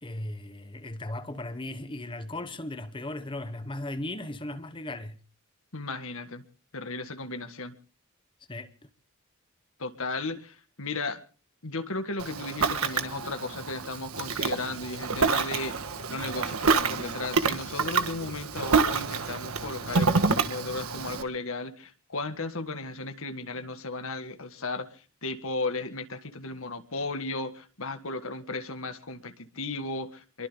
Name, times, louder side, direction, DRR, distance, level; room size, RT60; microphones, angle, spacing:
voice 1, 0.0-5.2 8.5-8.7, left 1 dB, 25° left, 1.1 m, -37 dB
voice 2, 5.7-6.4 6.7-7.7 9.8-11.2 11.6-15.8 16.1-24.9 25.2-30.5, left 3 dB, 70° left, 1.8 m, -35 dB
Ocean, 12.2-21.2, right 4 dB, 80° right, 1.6 m, -28 dB
28.5 x 23.0 x 2.2 m
head